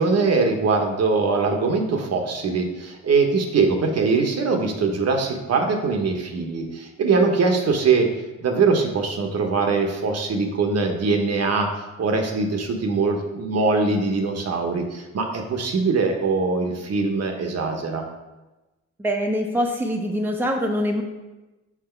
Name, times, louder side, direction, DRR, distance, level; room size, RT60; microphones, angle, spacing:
voice 1, 0.0-8.1 8.4-18.0, right 4 dB, 55° right, 4 dB, 1.1 m, -22 dB
voice 2, 19.0-21.0, equal, 5° right, 2 dB, 0.9 m, -24 dB
6.0 x 4.5 x 4.5 m, 1.1 s
cardioid pair, 90°, 30 cm